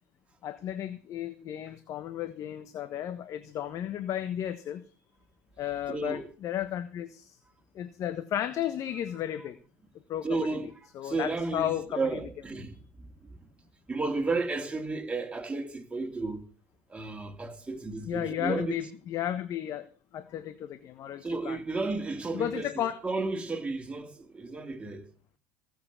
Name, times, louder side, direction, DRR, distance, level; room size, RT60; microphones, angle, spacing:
voice 1, 0.4-4.8 5.6-7.3 7.7-9.6 10.1-10.3 10.9-12.0 18.1-19.9 20.1-21.6 22.3-23.0, left 11 dB, 55° left, 1.3 m, -33 dB
voice 2, 5.9-6.3 10.2-10.7 11.0-13.5 13.9-16.5 16.9-18.7 21.2-25.1, right 3 dB, 15° right, 2.8 m, -33 dB
17.0 x 7.8 x 7.0 m
hypercardioid pair, 80°, 7 cm